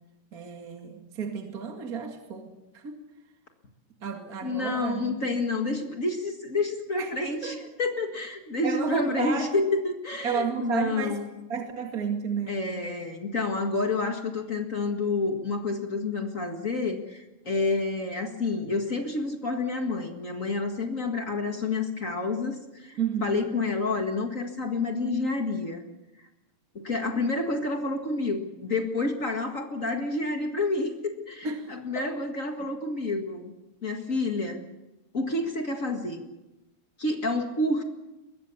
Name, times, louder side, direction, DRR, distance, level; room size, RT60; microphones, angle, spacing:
voice 1, 0.3-3.0 4.0-5.2 7.0-7.1 7.4-7.6 8.6-9.5 10.2-11.2 11.5-12.6 23.0-23.4 31.4-31.7 31.9-32.1, right 6 dB, 30° right, 3 dB, 1.8 m, -32 dB
voice 2, 4.4-11.3 12.5-25.8 26.7-33.5 33.8-34.6 35.1-36.2 37.0-37.8, left 3 dB, 60° left, 3 dB, 0.8 m, -29 dB
23.5 x 21.5 x 7.0 m, 1.0 s
omnidirectional pair, 4.6 m